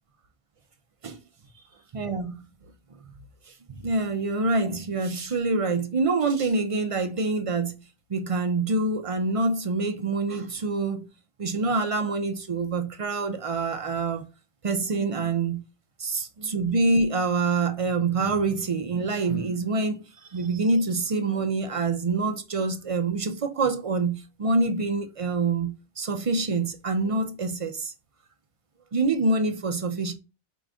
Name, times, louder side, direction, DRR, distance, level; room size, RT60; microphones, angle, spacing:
voice 1, 1.9-2.4 3.7-7.8 8.1-11.0 11.4-14.2 14.6-15.6 16.0-20.0 20.3-27.9 28.9-30.1, right 3 dB, 50° right, 0.4 m, -26 dB
4.9 x 2.5 x 3.4 m
omnidirectional pair, 1.2 m